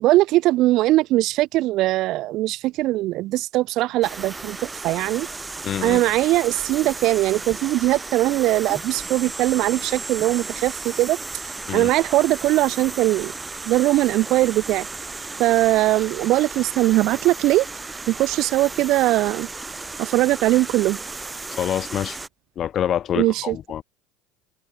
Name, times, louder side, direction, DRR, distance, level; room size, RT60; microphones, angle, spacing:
voice 1, 0.0-4.6 4.8-5.3 5.8-11.2 11.4-13.3 13.7-14.9 15.4-17.7 18.1-19.5 20.0-21.0 23.2-23.6, right 17 dB, 55° right, 0.8 m, -20 dB
sound 1, 4.0-22.3, right 3 dB, 15° right, 5.1 m, -34 dB
voice 2, 5.6-6.0 11.7-11.9 21.5-22.2 22.6-23.8, left 10 dB, 40° left, 4.1 m, -26 dB
supercardioid pair, 105°, 0 cm